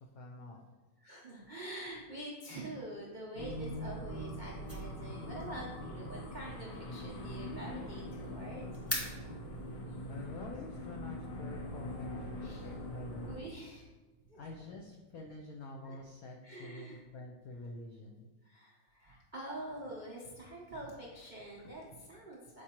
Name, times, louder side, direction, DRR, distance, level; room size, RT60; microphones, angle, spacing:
voice 1, 0.1-0.6 10.1-13.4 14.3-18.3, left 2 dB, 80° left, 0 dB, 0.8 m, -47 dB
voice 2, 1.0-8.7 9.9-10.1 12.4-12.7 13.2-13.9 14.3-14.4 15.8-15.9 16.4-17.0 18.4-22.6, right 1 dB, 75° right, -4 dB, 0.4 m, -46 dB
sound 1, 3.3-13.4, equal, 55° left, 1.3 m, -42 dB
sound 2, 4.0-9.8, equal, 15° left, 0.6 m, -46 dB
7.1 x 4.7 x 2.9 m, 1.2 s
omnidirectional pair, 2.2 m